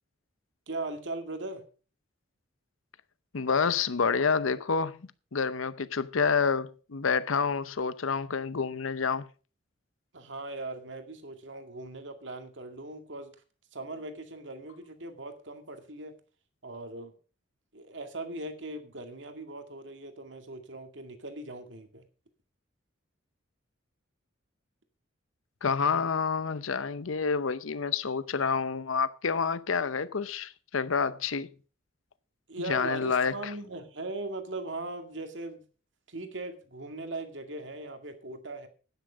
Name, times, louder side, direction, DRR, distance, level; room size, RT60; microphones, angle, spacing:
voice 1, 0.7-1.6 10.1-13.3 13.7-16.1 16.6-17.1 17.7-22.0 32.5-35.6 36.1-38.7, right 2 dB, 65° right, 2.1 m, -39 dB
voice 2, 3.3-9.2 25.6-31.5 32.7-33.5, left 5 dB, 80° left, 0.7 m, -28 dB
11.5 x 10.0 x 5.1 m
head